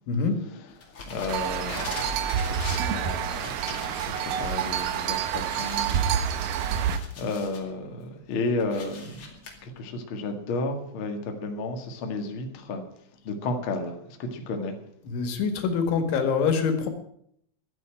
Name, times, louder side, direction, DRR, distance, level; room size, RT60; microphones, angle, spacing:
voice 1, 0.1-0.4 15.0-16.9, left 5 dB, 90° left, 7 dB, 4.2 m, -25 dB
sound 1, 0.8-4.8 5.1-5.2 5.5-7.7 8.1-9.5, left 3 dB, 35° left, 2.5 m, -41 dB
voice 2, 1.1-2.0 2.6-9.1 9.6-12.8 13.2-14.8, left 3 dB, 55° left, 4 dB, 1.5 m, -33 dB
sound 2, 1.3-7.0, right 8 dB, 75° right, 2.0 m, -28 dB
12.5 x 9.3 x 8.8 m, 0.71 s
omnidirectional pair, 5.3 m